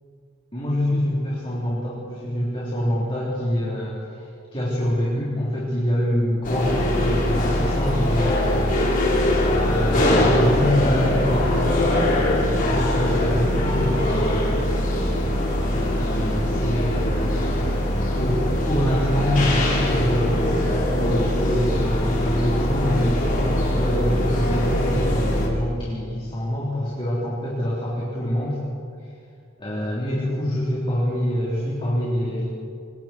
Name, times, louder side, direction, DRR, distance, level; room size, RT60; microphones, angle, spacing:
voice 1, 0.5-8.8 9.6-11.7 12.1-14.5 15.8-17.9 18.1-28.6 29.0-29.1 29.6-32.5, equal, 25° left, -7 dB, 3.9 m, -25 dB
sound 1, 6.4-25.5, left 1 dB, 40° left, 4.0 m, -22 dB
26.5 x 23.0 x 4.6 m, 2.3 s
head